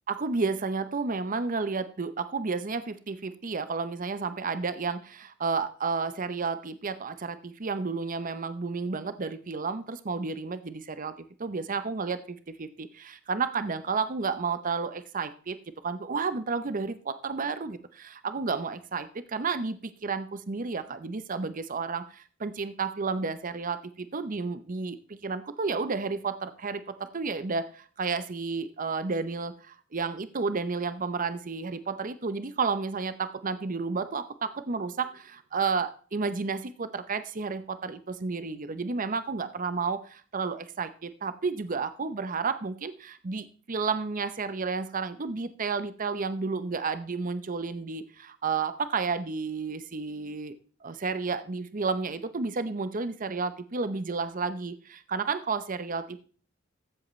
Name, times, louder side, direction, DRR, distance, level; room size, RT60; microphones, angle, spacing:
voice 1, 0.1-11.1 11.4-15.6 15.8-50.5 50.8-56.2, right 4 dB, 40° right, 12 dB, 0.7 m, -31 dB
14.5 x 7.6 x 3.2 m, 0.41 s
head